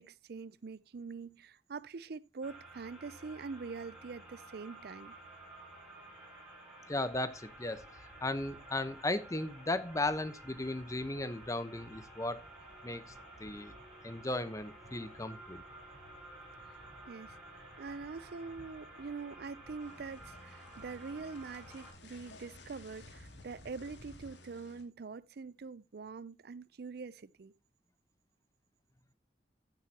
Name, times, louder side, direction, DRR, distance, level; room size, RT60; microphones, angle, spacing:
voice 1, 0.0-5.2 16.6-16.8 17.1-27.5, right 4 dB, 60° right, 0.5 m, -44 dB
sound 1, 2.4-21.9, right 1 dB, 5° right, 5.0 m, -53 dB
voice 2, 6.9-12.4 12.8-13.0 13.4-13.7 14.0-15.6, left 2 dB, 20° left, 0.9 m, -36 dB
sound 2, 7.2-24.3, equal, 50° left, 4.1 m, -59 dB
sound 3, 19.8-24.8, left 3 dB, 80° left, 2.4 m, -56 dB
14.5 x 7.9 x 2.8 m
head